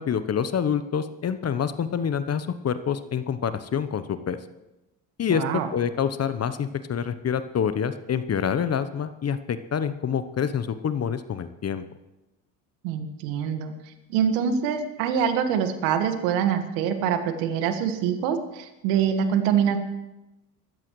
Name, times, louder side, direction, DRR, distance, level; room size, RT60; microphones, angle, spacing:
voice 1, 0.0-4.4 5.2-9.4 9.7-11.8, left 7 dB, 30° left, 12 dB, 0.9 m, -27 dB
voice 2, 5.3-5.7 12.8-13.7 14.1-19.8, right 8 dB, 70° right, 8 dB, 1.8 m, -25 dB
23.0 x 13.5 x 3.2 m, 0.98 s
hypercardioid pair, 65°, 49 cm